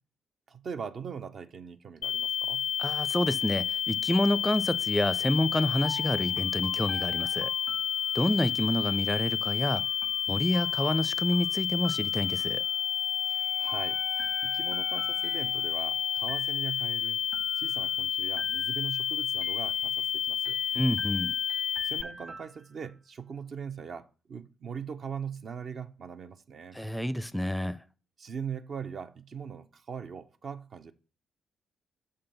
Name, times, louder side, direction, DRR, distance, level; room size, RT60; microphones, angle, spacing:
voice 1, 0.5-2.7 13.3-17.2 17.6-20.6 21.8-26.8 28.2-30.9, right 6 dB, 50° right, 0.6 m, -41 dB
sound 1, 2.0-22.0, left 9 dB, 60° left, 0.4 m, -30 dB
voice 2, 2.8-7.5 8.1-9.8 10.3-12.6 20.7-21.3 26.7-27.8, left 1 dB, 5° left, 0.5 m, -28 dB
sound 2, 5.8-8.6 9.7-12.8 13.7-15.9 16.3-16.9 17.3-18.0 18.4-19.0 19.4-20.1 20.4-22.9, right 3 dB, 35° right, 1.3 m, -47 dB
Wind instrument woodwind instrument, 12.4-16.6, right 6 dB, 75° right, 1.6 m, -47 dB
6.5 x 3.7 x 5.7 m
hypercardioid pair, 40°, 0 cm